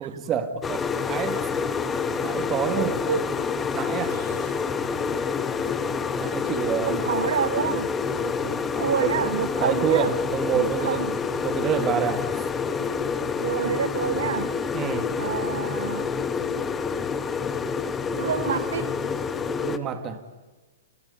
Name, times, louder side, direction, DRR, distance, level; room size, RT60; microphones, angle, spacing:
voice 1, 0.0-1.5 2.2-3.0 3.7-4.2 6.2-7.1 7.7-7.8 8.1-11.1 11.4-12.5 14.7-15.2 19.6-20.3, right 8 dB, 20° right, 1.9 m, -28 dB
sound 1, 0.6-19.8, left 5 dB, 10° left, 1.1 m, -27 dB
sound 2, 3.8-5.7, right 7 dB, 45° right, 6.0 m, -53 dB
voice 2, 6.9-7.9 8.8-10.1 10.6-11.1 13.3-14.5 15.2-16.1 18.2-18.9, right 8 dB, 75° right, 1.0 m, -27 dB
29.5 x 29.5 x 5.5 m
hypercardioid pair, 160°, 0 cm